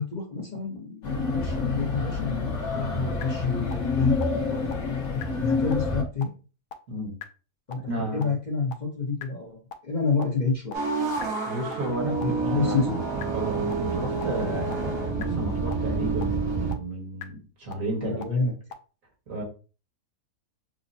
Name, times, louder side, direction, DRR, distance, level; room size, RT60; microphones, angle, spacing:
voice 1, 0.0-4.8 5.4-6.3 7.7-10.8 11.9-13.0 17.9-18.5, left 4 dB, 35° left, 0.9 m, -29 dB
sound 1, 0.8-3.2 3.7-3.8 4.2-4.3 4.7-4.8 5.2-5.3 5.7-5.8 6.2-6.3 6.7-6.8 7.2-7.3 7.7-7.8 8.2-8.3 8.7-8.8 9.2-9.3 9.7-9.8 10.2-10.3 10.7-10.8 11.2-11.3 11.7-11.8 12.2-12.3 12.7-12.8 13.2-13.3 13.7-13.8 14.2-14.3 14.7-14.8 15.2-15.3 15.7-15.8 16.2-16.3 16.7-16.8 17.2-17.3 17.7-17.8 18.2-18.3 18.7-18.8, left 9 dB, 80° left, 1.1 m, -39 dB
sound 2, 1.0-6.0, left 3 dB, 55° left, 1.3 m, -28 dB
voice 2, 7.9-8.3 11.4-12.9 13.3-18.2 19.3-19.4, right 1 dB, 60° right, 1.9 m, -33 dB
sound 3, 10.7-16.7, right 4 dB, 85° right, 1.8 m, -28 dB
6.3 x 2.1 x 2.6 m
omnidirectional pair, 1.6 m